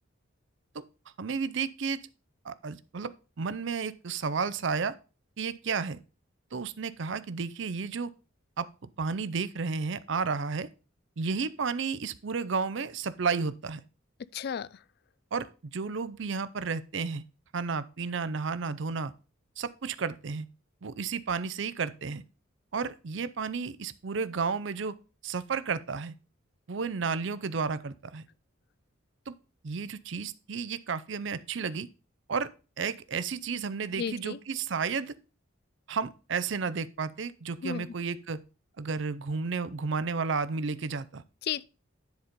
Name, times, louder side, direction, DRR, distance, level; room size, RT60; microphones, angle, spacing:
voice 1, 1.2-2.0 2.4-5.0 5.4-6.0 6.5-8.1 8.6-8.7 9.0-10.7 11.2-13.8 15.3-17.2 17.5-19.1 19.6-20.5 20.8-22.2 22.7-25.0 25.2-26.2 26.7-28.2 29.3-29.4 29.6-31.9 32.3-32.5 32.8-35.1 35.9-38.4 38.8-41.2, right 5 dB, 60° right, 0.5 m, -32 dB
voice 2, 14.3-14.8 34.0-34.4 37.6-37.9 41.4-41.7, left 7 dB, 50° left, 0.3 m, -33 dB
10.5 x 4.2 x 5.1 m
head